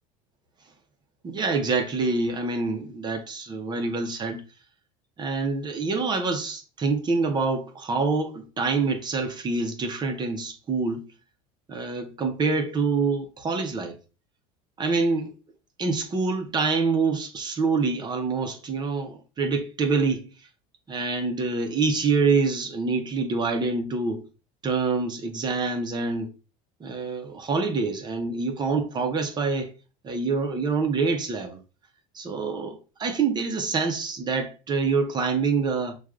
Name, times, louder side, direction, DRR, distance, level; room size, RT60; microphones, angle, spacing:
voice 1, 1.2-4.4 5.2-11.0 11.7-14.0 14.8-15.3 15.8-20.3 20.9-24.3 24.6-26.3 26.8-29.7 30.0-31.6 32.1-35.9, right 4 dB, 25° right, 0.8 m, -26 dB
6.0 x 2.4 x 2.4 m
supercardioid pair, 120°, 17 cm